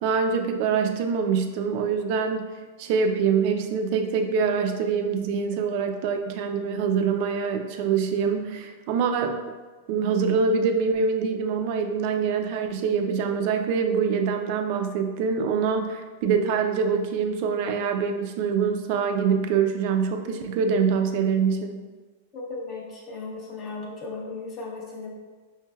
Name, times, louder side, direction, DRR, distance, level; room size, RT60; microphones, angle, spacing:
voice 1, 0.0-2.5 2.8-9.4 9.9-21.8, right 6 dB, 50° right, 6 dB, 0.4 m, -24 dB
voice 2, 22.3-25.1, left 3 dB, 35° left, -3 dB, 0.6 m, -36 dB
4.9 x 3.1 x 2.3 m, 1.3 s
supercardioid pair, 140°, 0 cm